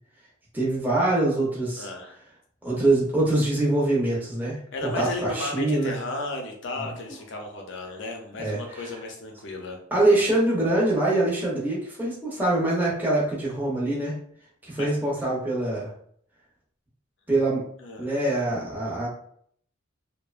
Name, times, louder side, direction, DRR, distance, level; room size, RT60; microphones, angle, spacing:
voice 1, 0.5-1.9 2.6-4.6 5.0-5.9 8.4-8.8 9.9-14.1 14.6-15.9 17.3-17.6 18.0-19.1, right 2 dB, 10° right, -6 dB, 0.6 m, -24 dB
voice 2, 1.8-2.2 4.7-9.8 14.8-15.0 17.8-18.1, left 2 dB, 60° left, 2 dB, 0.6 m, -34 dB
2.7 x 2.1 x 2.3 m, 0.63 s
head